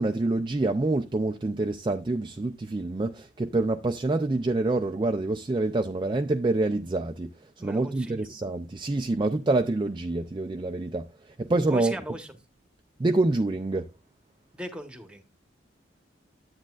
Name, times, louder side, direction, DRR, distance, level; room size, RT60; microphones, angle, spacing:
voice 1, 0.0-12.0 13.0-13.9, right 2 dB, 25° right, 0.4 m, -27 dB
voice 2, 7.6-8.1 11.7-12.3 14.5-15.2, right 1 dB, 5° right, 1.1 m, -38 dB
10.0 x 8.6 x 2.4 m
head